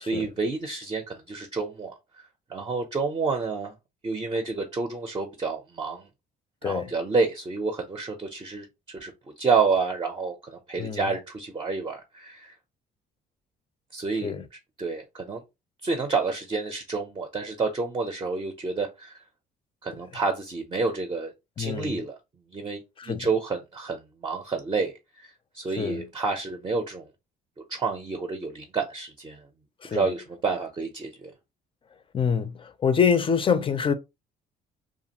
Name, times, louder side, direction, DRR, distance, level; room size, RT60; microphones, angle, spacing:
voice 1, 0.1-3.7 4.0-6.1 6.6-9.1 9.4-12.5 13.9-14.3 14.8-15.4 15.8-19.1 19.8-21.3 21.6-22.2 22.5-27.1 27.7-29.4 29.9-31.3, right 4 dB, 25° right, 0.6 m, -29 dB
voice 2, 6.6-6.9 10.8-11.0 14.2-14.4 21.6-22.0 23.0-23.3 25.8-26.0 29.8-30.1 32.1-33.9, left 6 dB, 30° left, 0.5 m, -25 dB
2.5 x 2.4 x 2.8 m
cardioid pair, 105°, 18 cm